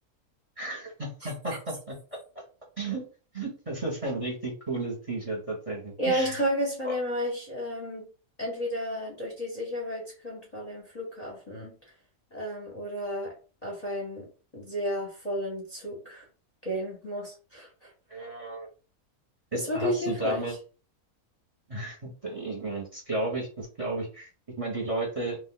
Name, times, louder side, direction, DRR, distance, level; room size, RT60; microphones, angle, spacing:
voice 1, 0.6-1.9 2.8-3.0 3.3-6.4 6.8-7.0 18.1-18.7 19.5-20.6 21.7-24.3 24.6-25.4, right 2 dB, 30° right, -2 dB, 0.9 m, -33 dB
voice 2, 6.0-8.1 8.4-11.7 12.3-13.3 13.6-14.3 14.5-16.2 16.6-17.9 19.5-20.4, equal, 35° left, -1 dB, 0.7 m, -32 dB
2.4 x 2.4 x 3.7 m, 0.36 s
omnidirectional pair, 1.5 m